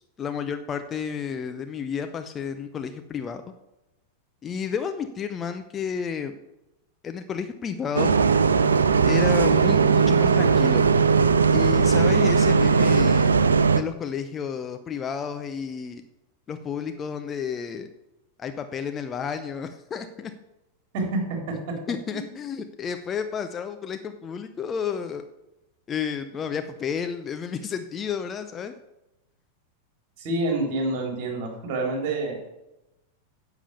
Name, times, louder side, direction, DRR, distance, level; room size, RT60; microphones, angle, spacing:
voice 1, 0.0-3.4 4.4-6.4 7.0-8.1 9.0-10.9 11.5-13.3 13.7-16.0 16.5-17.9 18.4-20.3 21.9-25.2 25.9-28.7, left 7 dB, 25° left, 8 dB, 0.8 m, -31 dB
Bus, 7.9-13.8, right 5 dB, 70° right, 0.5 m, -19 dB
voice 2, 30.2-32.5, right 2 dB, 45° right, 1 dB, 4.1 m, -27 dB
10.0 x 7.1 x 6.8 m, 0.94 s
figure-of-eight pair, 90°, 0 cm